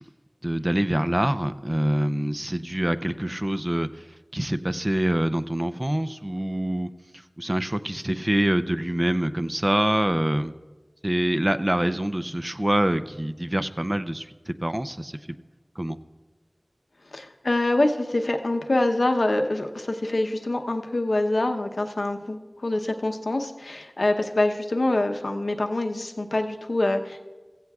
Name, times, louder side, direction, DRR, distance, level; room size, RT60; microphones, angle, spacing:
voice 1, 0.4-4.1 4.3-6.9 7.4-10.5 11.0-15.2 15.8-16.0, right 1 dB, 25° right, 10 dB, 0.5 m, -25 dB
voice 2, 17.1-27.2, left 2 dB, 80° left, 4 dB, 0.8 m, -25 dB
16.0 x 15.0 x 2.4 m, 1.3 s
wide cardioid pair, 45°, 0 cm